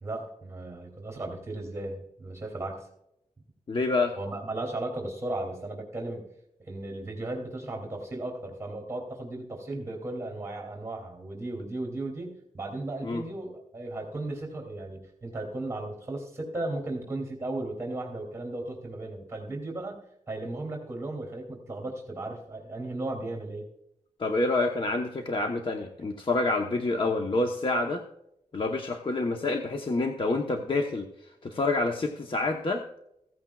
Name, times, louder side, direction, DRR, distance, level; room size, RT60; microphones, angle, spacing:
voice 1, 0.0-2.9 4.1-6.2 6.6-20.0 20.3-23.6, right 2 dB, 25° right, 1 dB, 2.8 m, -35 dB
voice 2, 3.7-4.1 13.0-13.2 24.2-28.0 28.5-31.1 31.4-32.8, left 2 dB, 40° left, 3 dB, 1.0 m, -27 dB
15.5 x 15.0 x 2.4 m, 0.80 s
wide cardioid pair, 95°, 13 cm